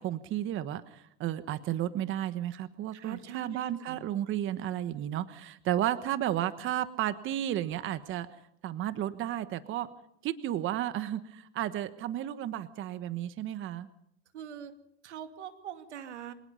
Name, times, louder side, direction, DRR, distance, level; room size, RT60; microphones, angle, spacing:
voice 1, 0.0-8.3 8.6-9.9 10.2-13.9, right 12 dB, 35° right, 12 dB, 1.2 m, -33 dB
voice 2, 2.9-4.0 14.3-14.7 15.0-16.3, right 9 dB, 90° right, 8 dB, 2.5 m, -43 dB
25.5 x 19.0 x 5.5 m, 0.73 s
supercardioid pair, 120°, 34 cm